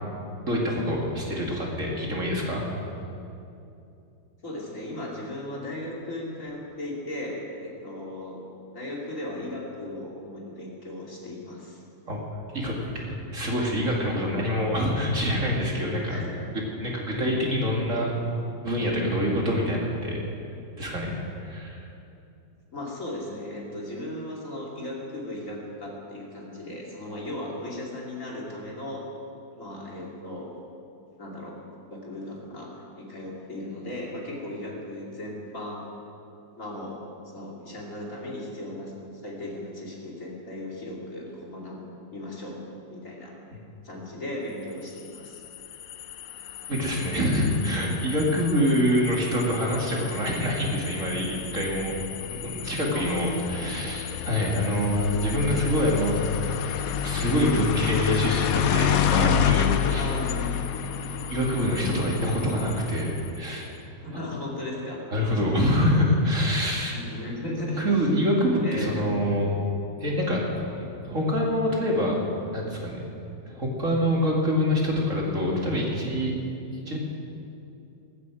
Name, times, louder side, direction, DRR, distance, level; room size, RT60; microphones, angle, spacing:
voice 1, 0.5-2.6 12.1-12.2 12.5-16.2 16.8-18.1 18.6-20.2 20.8-21.1 21.4-21.9 43.5-43.6 46.7-51.9 52.3-56.4 57.0-60.1 61.3-63.7 65.1-66.9 67.6-69.5 70.0-72.2 72.5-73.1 73.5-76.3 76.9-77.0, equal, 45° right, -2 dB, 2.7 m, -25 dB
voice 2, 4.4-8.5 8.7-11.8 14.3-14.4 16.0-16.4 22.7-29.0 29.6-30.6 31.2-35.8 36.5-37.0 37.3-38.9 39.2-41.8 42.1-42.6 42.9-43.3 43.8-45.4 52.9-53.6 60.0-60.6 64.0-65.0 66.9-68.1 68.6-68.9, left 1 dB, 45° left, -3 dB, 2.9 m, -36 dB
sound 1, 45.0-63.5, left 10 dB, 65° left, 0.9 m, -30 dB
19.0 x 15.5 x 4.9 m, 2.7 s
omnidirectional pair, 2.0 m